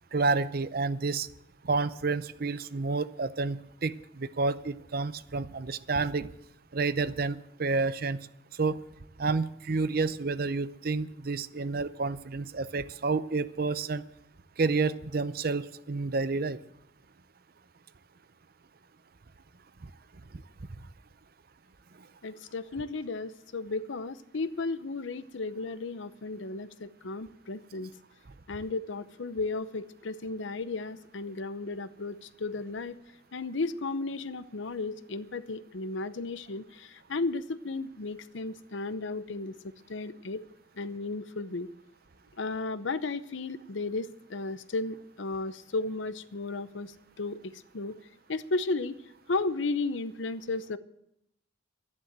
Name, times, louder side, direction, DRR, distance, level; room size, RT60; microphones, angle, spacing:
voice 1, 0.1-1.3 1.6-6.3 6.7-8.3 8.6-8.8 9.2-14.0 14.6-16.6, right 3 dB, 50° right, 15 dB, 0.6 m, -29 dB
voice 2, 22.2-27.9 28.5-33.0 33.3-39.5 39.9-40.4 40.8-41.7 42.4-48.0 48.3-49.0 49.3-50.8, left 3 dB, 75° left, 14 dB, 0.8 m, -34 dB
12.5 x 11.0 x 7.4 m, 0.75 s
head